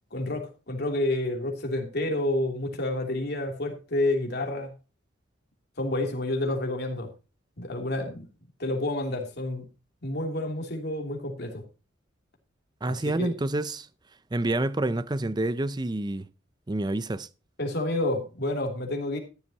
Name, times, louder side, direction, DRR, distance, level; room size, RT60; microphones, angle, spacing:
voice 1, 0.1-4.7 5.8-7.1 7.6-8.3 8.6-9.7 10.0-11.6 12.9-13.3 17.6-19.2, left 1 dB, 55° left, 3.0 m, -29 dB
voice 2, 12.8-13.9 14.3-16.3 16.7-17.3, right 2 dB, 20° right, 0.5 m, -28 dB
13.5 x 11.5 x 2.9 m
head